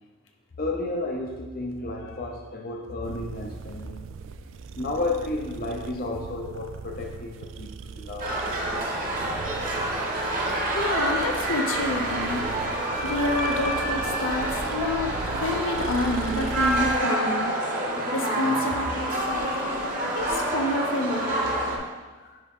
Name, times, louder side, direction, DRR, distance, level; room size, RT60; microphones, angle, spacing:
voice 1, 0.6-4.1 4.7-8.4 9.1-9.3 10.5-10.6 17.8-18.0 22.2-22.4, left 2 dB, 45° left, 1 dB, 0.7 m, -32 dB
sound 1, 3.0-17.0, right 5 dB, 70° right, 0.3 m, -39 dB
sound 2, 8.2-21.8, right 1 dB, 40° right, 1.3 m, -27 dB
voice 2, 10.7-12.5 13.0-17.5 18.1-19.6 20.1-21.5, left 2 dB, 80° left, 3 dB, 0.8 m, -29 dB
10.5 x 3.6 x 3.7 m, 1.3 s
head